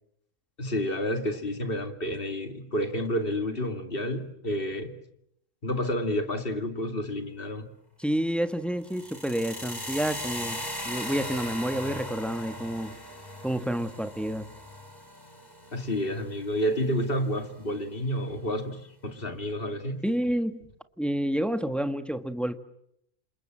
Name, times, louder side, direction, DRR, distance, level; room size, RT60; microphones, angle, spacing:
voice 1, 0.6-4.9 5.6-7.7 15.7-20.0, equal, 45° left, 7 dB, 2.6 m, -30 dB
voice 2, 8.0-13.0 13.4-14.5 20.0-20.7 21.0-22.6, equal, ahead, 10 dB, 1.3 m, -29 dB
sound 1, 8.8-16.9, left 1 dB, 15° left, 5.0 m, -38 dB
28.5 x 27.5 x 7.6 m, 0.76 s
omnidirectional pair, 1.3 m